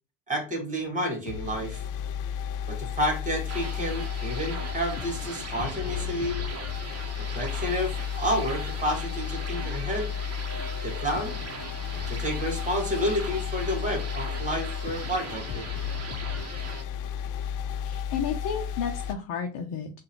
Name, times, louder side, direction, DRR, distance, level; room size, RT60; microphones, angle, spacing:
voice 1, 0.3-1.8 2.7-6.5 7.2-10.2 10.8-11.4 11.9-15.7, equal, 15° right, 3 dB, 2.1 m, -30 dB
sound 1, 1.3-19.1, left 8 dB, 40° left, 0.5 m, -33 dB
sound 2, 3.5-16.8, right 4 dB, 30° right, 1.1 m, -40 dB
voice 2, 17.8-19.9, left 7 dB, 55° left, 3 dB, 0.9 m, -32 dB
3.7 x 2.8 x 4.5 m, 0.31 s
supercardioid pair, 80°, 50 cm